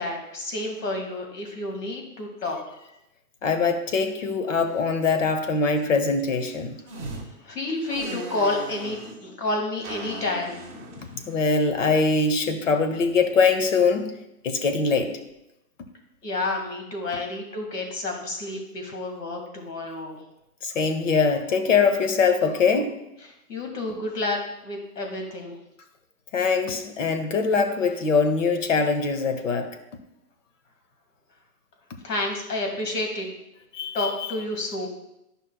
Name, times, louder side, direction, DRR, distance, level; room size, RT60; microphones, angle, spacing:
voice 1, 0.0-2.6 7.0-7.2 7.4-10.6 11.0-11.2 16.2-20.2 23.5-25.6 32.0-33.3 33.9-34.9, left 2 dB, 90° left, 2 dB, 2.1 m, -30 dB
voice 2, 3.4-6.8 11.3-14.1 14.4-15.1 20.6-23.0 26.3-29.7 33.7-34.3, left 4 dB, 55° left, 8 dB, 0.9 m, -22 dB
sound 1, 6.9-7.2 7.9-9.2 9.8-12.2, right 2 dB, 10° right, 0.5 m, -38 dB
11.0 x 5.4 x 2.3 m, 0.87 s
hypercardioid pair, 165°, 46 cm